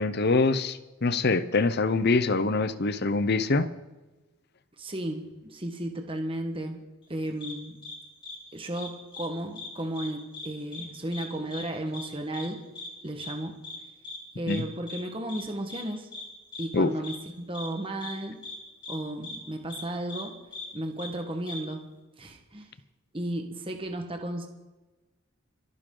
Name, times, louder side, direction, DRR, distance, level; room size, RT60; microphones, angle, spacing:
voice 1, 0.0-3.7 14.5-14.6 16.7-16.9, left 3 dB, 45° left, 14 dB, 0.7 m, -24 dB
voice 2, 4.8-6.8 7.1-7.8 8.5-12.6 13.0-13.6 14.4-16.1 16.6-18.4 18.9-20.4 20.7-21.8 22.2-22.7 23.1-24.5, right 1 dB, 25° right, 4 dB, 1.3 m, -34 dB
sound 1, 7.4-7.5 7.8-8.0 8.2-8.4 8.7-9.3 9.5-9.7 9.9-10.5 10.7-10.9 11.1-11.3 11.5-11.6 11.9-12.1 12.3-12.5 12.7-12.9 13.2-13.3 13.6-13.8 14.0-14.2 14.5-14.6 14.9-15.0 15.3-15.4 15.7-15.8 16.1-16.2 16.5-16.7 17.0-17.2 17.5-17.7 18.0-18.1 18.4-18.6 18.8-19.0 19.2-19.4 19.7-19.8 20.1-20.2 20.5-20.7 21.0-21.1 21.5-21.6, left 3 dB, 20° left, 2.7 m, -39 dB
25.5 x 9.8 x 3.9 m, 1.1 s
head